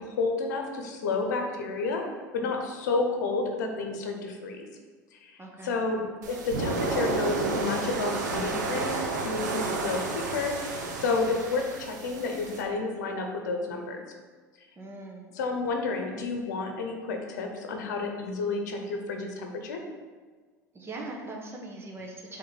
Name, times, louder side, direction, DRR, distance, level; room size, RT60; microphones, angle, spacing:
voice 1, 0.0-2.1 2.3-4.6 5.1-9.0 9.2-14.0 15.3-19.8, left 3 dB, 75° left, 3 dB, 0.8 m, -30 dB
voice 2, 5.4-5.8 14.8-15.2 20.7-22.4, right 2 dB, 25° right, -1 dB, 1.5 m, -40 dB
sound 1, 6.2-12.6, right 3 dB, 80° right, 1.0 m, -31 dB
7.6 x 3.3 x 4.1 m, 1.5 s
hypercardioid pair, 75°, 10 cm